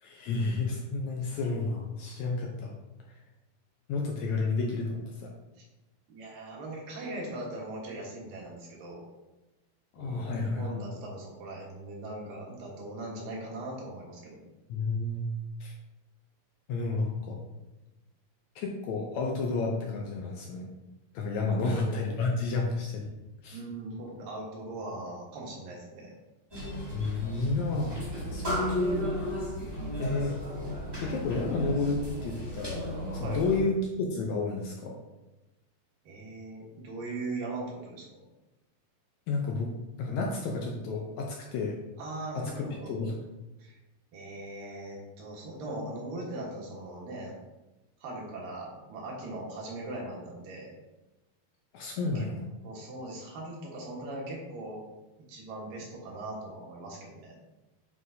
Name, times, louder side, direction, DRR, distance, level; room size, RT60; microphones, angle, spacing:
voice 1, 0.0-2.7 3.9-5.3 9.9-10.8 14.7-15.3 15.6-15.7 16.7-17.4 18.5-20.7 21.1-23.1 23.4-23.6 26.9-27.9 28.3-29.1 30.0-30.4 31.0-35.0 39.3-39.7 40.0-41.8 42.3-43.2 51.7-52.4, left 3 dB, 75° left, 0 dB, 1.8 m, -31 dB
voice 2, 6.1-9.0 10.0-14.4 21.5-22.1 23.5-26.1 33.2-33.4 36.0-38.2 42.0-42.9 43.6-43.8 44.1-47.3 48.0-50.7 52.1-52.3 52.6-54.8 55.3-57.4, right 2 dB, 80° right, -3 dB, 3.1 m, -40 dB
sound 1, 26.5-33.6, equal, 15° right, 0.9 m, -35 dB
8.3 x 4.6 x 2.7 m, 1.0 s
omnidirectional pair, 3.9 m